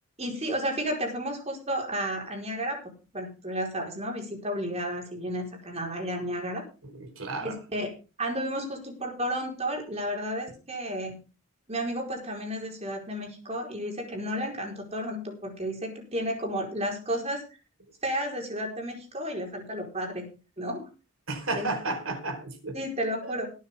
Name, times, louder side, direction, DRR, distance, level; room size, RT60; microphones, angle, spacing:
voice 1, 0.2-2.8 3.1-6.6 7.4-7.9 8.2-11.2 11.7-17.4 18.0-20.3 20.6-20.8 21.5-21.7 22.7-23.5, equal, 30° right, 2 dB, 4.7 m, -32 dB
voice 2, 6.9-7.5 21.3-22.8 23.3-23.4, right 2 dB, 70° right, 5 dB, 4.6 m, -32 dB
20.0 x 9.5 x 3.7 m, 0.32 s
head